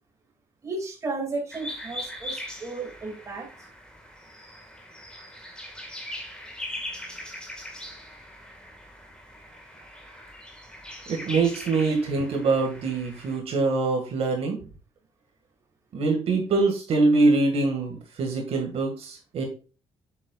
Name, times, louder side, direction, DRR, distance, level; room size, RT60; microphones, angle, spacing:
voice 1, 0.6-3.5, right 3 dB, 25° right, 0 dB, 2.4 m, -33 dB
sound 1, 1.5-13.4, left 1 dB, 5° left, 1.7 m, -40 dB
voice 2, 11.1-14.6 15.9-19.4, right 3 dB, 60° right, 2 dB, 1.9 m, -24 dB
7.7 x 7.7 x 2.4 m, 0.35 s
cardioid pair, 175°, 12 cm